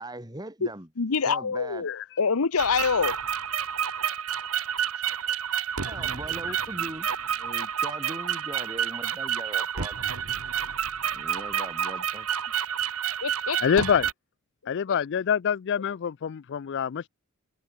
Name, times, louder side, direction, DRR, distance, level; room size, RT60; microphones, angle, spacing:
voice 1, 0.0-0.9 1.3-1.9 5.9-7.1 7.4-10.0 11.1-12.3, right 1 dB, 20° right, 4.3 m, -40 dB
voice 2, 1.0-3.2 13.2-13.8, left 5 dB, 90° left, 0.9 m, -26 dB
sound 1, 2.6-14.1, right 8 dB, 80° right, 1.8 m, -29 dB
voice 3, 13.6-14.1 14.7-17.1, left 7 dB, 55° left, 0.4 m, -25 dB
head